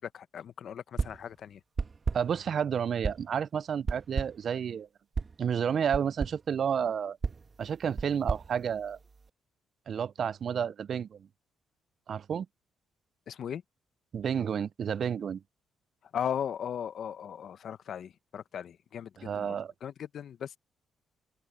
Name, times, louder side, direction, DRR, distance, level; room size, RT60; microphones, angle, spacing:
voice 1, 0.0-1.6 13.3-13.6 16.1-19.6 19.8-20.6, left 9 dB, 60° left, 0.7 m, -37 dB
sound 1, 1.0-1.3 1.8-2.4 3.0-3.4 3.9-4.5 5.1-5.4 5.9-6.5 7.2-9.3, right 4 dB, 35° right, 1.6 m, -34 dB
voice 2, 2.1-4.9 5.4-7.2 7.6-9.0 9.9-11.3 12.1-12.5 14.1-15.4 19.2-19.7, right 7 dB, 55° right, 0.4 m, -31 dB
open air
cardioid pair, 90°, 0 cm